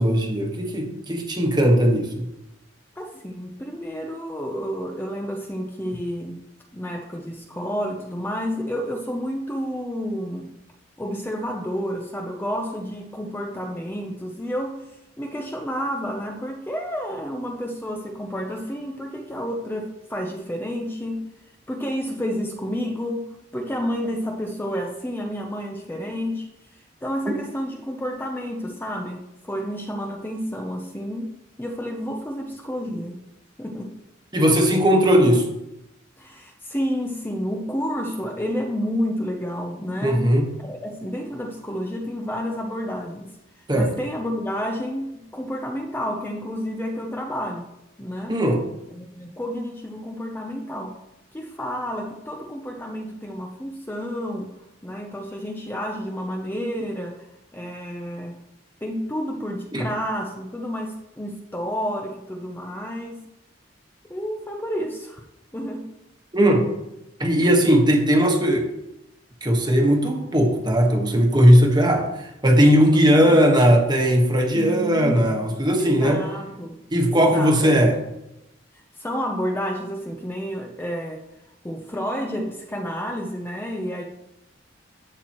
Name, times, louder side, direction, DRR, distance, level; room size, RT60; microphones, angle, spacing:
voice 1, 0.0-2.3 34.3-35.4 40.0-40.5 43.7-43.9 48.3-48.6 59.7-59.9 66.3-66.6 67.2-68.7 69.4-72.1 72.4-76.2 76.9-78.0, equal, 25° right, 2 dB, 1.4 m, -18 dB
voice 2, 3.0-6.4 6.7-10.5 11.0-14.9 15.2-21.3 21.7-26.5 27.0-31.3 31.6-33.1 33.6-33.9 36.2-40.2 40.6-43.3 43.7-47.7 48.0-48.4 48.9-51.0 51.3-54.5 54.8-57.3 57.5-58.4 58.8-63.2 64.1-65.2 65.5-65.9 67.4-67.6 72.9-73.3 74.6-76.8 77.2-77.8 79.0-81.2 81.6-84.0, equal, 10° left, 2 dB, 0.7 m, -30 dB
11.5 x 7.9 x 3.0 m, 0.89 s
head